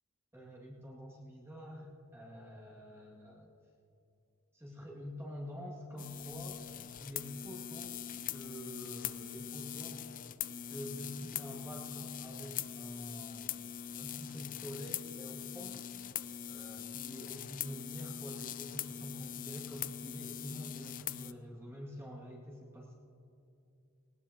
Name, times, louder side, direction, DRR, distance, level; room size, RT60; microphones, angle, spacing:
voice 1, 0.3-3.5 4.5-6.6 7.0-10.0 10.4-13.6 14.0-15.8 16.5-22.9, equal, 10° right, -4 dB, 2.1 m, -47 dB
sound 1, 6.0-21.3, left 10 dB, 40° left, 0.4 m, -42 dB
19.5 x 19.0 x 2.9 m, 2.7 s
head